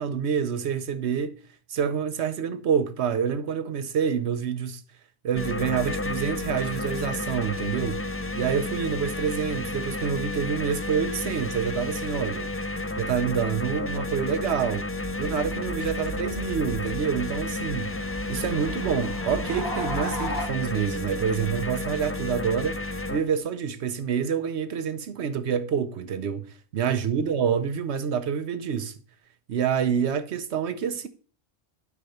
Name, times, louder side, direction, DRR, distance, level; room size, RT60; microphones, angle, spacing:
voice 1, 0.0-1.4 1.7-4.8 5.2-8.1 8.3-12.5 12.9-14.9 15.2-18.0 18.3-22.8 23.1-28.9 29.5-31.1, right 7 dB, 90° right, 1.1 m, -27 dB
sound 1, 5.3-23.2, left 2 dB, 20° left, 0.4 m, -32 dB
sound 2, 15.0-20.5, equal, 70° left, 2.2 m, -36 dB
8.5 x 5.2 x 5.7 m
omnidirectional pair, 1.1 m